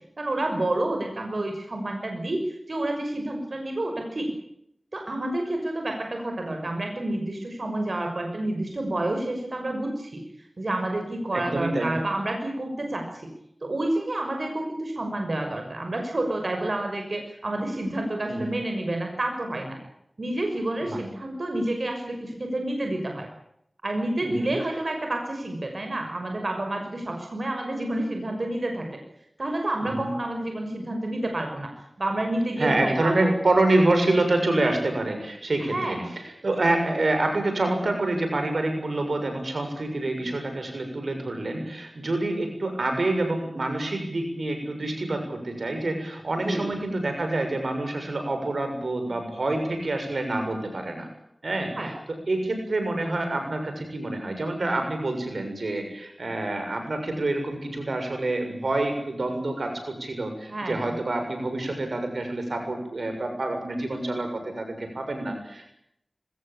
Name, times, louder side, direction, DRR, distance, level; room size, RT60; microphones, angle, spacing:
voice 1, 0.2-4.3 4.9-10.2 10.6-13.3 13.6-19.8 20.2-23.3 23.8-29.0 29.4-31.7 32.0-33.3 35.7-36.1 46.4-46.6 51.8-51.9 60.5-60.8, right 1 dB, 70° right, 3 dB, 6.1 m, -29 dB
voice 2, 11.3-11.9 18.3-18.5 20.8-21.0 24.2-24.5 29.8-30.1 32.6-36.0 36.4-51.1 51.4-51.9 52.3-65.7, right 2 dB, 85° right, 5 dB, 7.1 m, -27 dB
23.5 x 20.0 x 8.8 m, 0.74 s
wide cardioid pair, 55°, 0 cm